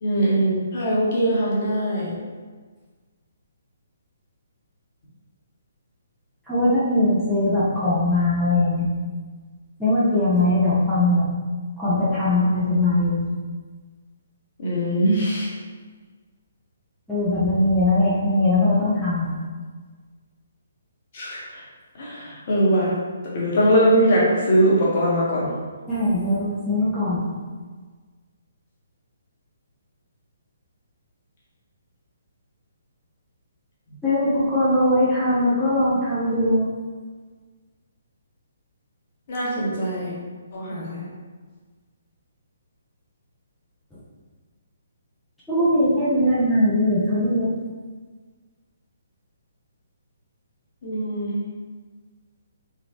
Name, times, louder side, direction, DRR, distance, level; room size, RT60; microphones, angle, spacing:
voice 1, 0.0-2.1 14.6-15.5 21.1-21.4 22.0-22.9 23.3-25.5 39.3-40.1 40.5-41.0 50.8-51.5, right 1 dB, 40° left, -6 dB, 1.3 m, -21 dB
voice 2, 6.5-8.9 9.8-11.3 11.8-13.2 17.1-19.3 25.9-27.2 34.0-36.7 45.5-47.5, left 1 dB, 5° left, -12 dB, 0.9 m, -20 dB
3.7 x 3.5 x 3.0 m, 1.4 s
figure-of-eight pair, 130°, 0 cm